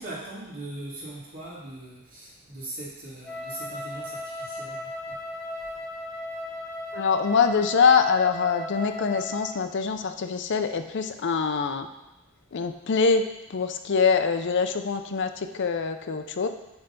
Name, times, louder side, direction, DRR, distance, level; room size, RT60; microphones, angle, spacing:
voice 1, 0.0-5.2, right 1 dB, 50° right, -9 dB, 1.7 m, -40 dB
Wind instrument woodwind instrument, 3.2-9.7, left 1 dB, ahead, 1.7 m, -36 dB
voice 2, 6.9-11.9 12.5-13.2 13.5-16.5, left 5 dB, 55° left, 8 dB, 0.5 m, -24 dB
8.9 x 3.4 x 5.3 m, 0.94 s
head